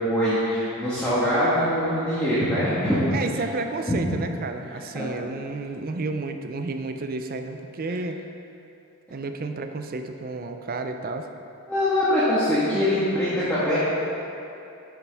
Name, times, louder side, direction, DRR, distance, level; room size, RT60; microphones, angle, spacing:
voice 1, 0.0-3.0 3.9-4.0 4.9-5.1 11.7-13.8, equal, 5° left, -13 dB, 1.4 m, -23 dB
voice 2, 3.1-8.2 9.1-11.3, right 3 dB, 40° right, 6 dB, 0.5 m, -31 dB
9.8 x 6.9 x 3.5 m, 2.8 s
head